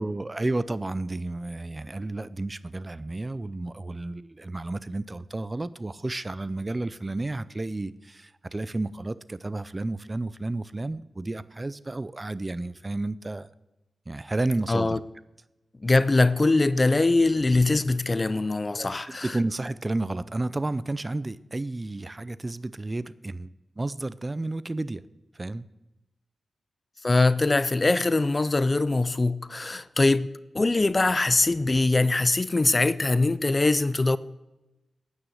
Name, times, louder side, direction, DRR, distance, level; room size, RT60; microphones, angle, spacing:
voice 1, 0.0-13.5 14.1-15.0 18.7-25.0 25.3-25.6, right 2 dB, 25° right, 0.5 m, -32 dB
voice 2, 14.7-15.0 15.8-19.3 27.0-30.3 30.5-34.2, left 2 dB, 30° left, 0.5 m, -22 dB
9.5 x 8.9 x 7.9 m
cardioid pair, 70°, 0 cm